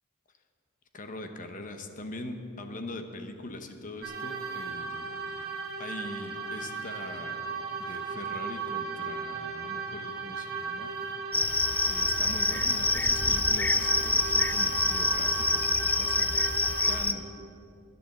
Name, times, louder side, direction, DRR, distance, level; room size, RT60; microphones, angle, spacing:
voice 1, 0.9-5.2 5.8-7.5 7.8-10.9 11.9-16.4 16.8-17.3, left 2 dB, 35° left, 7 dB, 1.0 m, -42 dB
sound 1, 4.0-17.0, right 5 dB, 45° right, 2.1 m, -36 dB
Cricket, 11.3-17.1, left 3 dB, 10° left, 0.3 m, -26 dB
10.0 x 9.9 x 7.7 m, 2.5 s
head